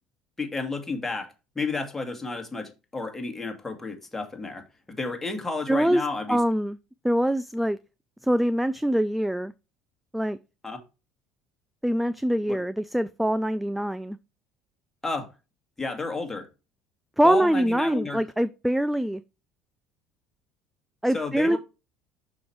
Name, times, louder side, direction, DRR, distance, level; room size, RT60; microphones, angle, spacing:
voice 1, 0.4-6.4 10.6-10.8 12.5-12.6 15.0-15.3 15.8-16.5 17.2-18.2 21.1-21.6, left 3 dB, 15° left, 2.0 m, -32 dB
voice 2, 5.7-6.0 6.3-6.8 7.0-7.8 8.2-9.5 10.1-10.4 11.8-14.2 17.2-19.2 21.0-21.6, equal, 5° right, 0.4 m, -24 dB
6.2 x 5.1 x 4.5 m
supercardioid pair, 90°, 2 cm